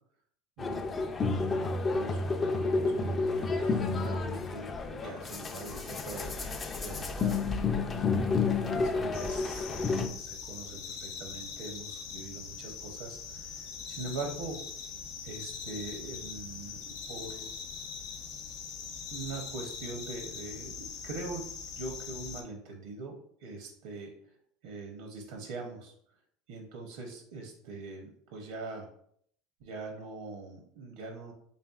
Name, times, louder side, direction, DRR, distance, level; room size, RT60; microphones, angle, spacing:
sound 1, 0.6-10.1, left 4 dB, 20° left, 0.3 m, -30 dB
voice 1, 0.6-1.1 1.5-7.7 8.1-15.0 15.2-17.5 19.1-21.4 21.8-23.1 23.4-24.1 24.6-25.9 26.5-28.8 29.6-31.3, right 3 dB, 75° right, 3 dB, 0.7 m, -43 dB
sound 2, 9.1-22.4, left 6 dB, 65° left, 0.8 m, -42 dB
4.1 x 3.4 x 2.3 m, 0.66 s
supercardioid pair, 145°, 0 cm